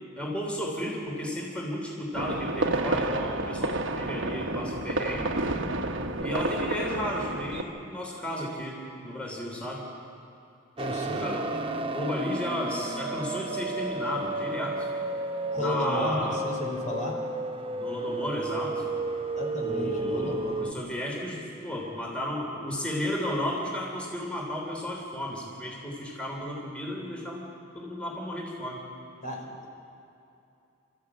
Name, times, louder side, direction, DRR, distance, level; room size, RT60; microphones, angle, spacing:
voice 1, 0.1-5.4 6.2-9.8 10.9-11.5 11.8-14.9 15.5-16.4 17.7-18.8 19.6-27.5 27.7-28.8, left 1 dB, 5° left, -2 dB, 3.1 m, -33 dB
sound 1, 2.1-7.6, right 2 dB, 70° right, 1.3 m, -30 dB
voice 2, 10.8-11.7 15.5-17.1 19.3-20.7 29.2-29.7, equal, 40° left, 0 dB, 4.2 m, -34 dB
sound 2, 10.8-20.7, right 2 dB, 30° right, 0.8 m, -32 dB
28.0 x 14.0 x 8.7 m, 2.7 s
head